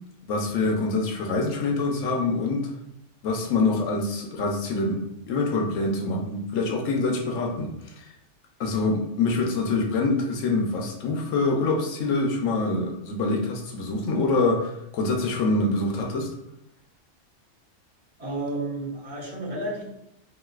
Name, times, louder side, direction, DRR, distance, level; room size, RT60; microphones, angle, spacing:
voice 1, 0.3-2.7 3.2-8.1 8.6-16.3, left 3 dB, 80° left, 1 dB, 1.0 m, -25 dB
voice 2, 18.2-19.8, right 2 dB, 55° right, -9 dB, 1.7 m, -31 dB
3.9 x 2.5 x 2.3 m, 0.81 s
omnidirectional pair, 1.3 m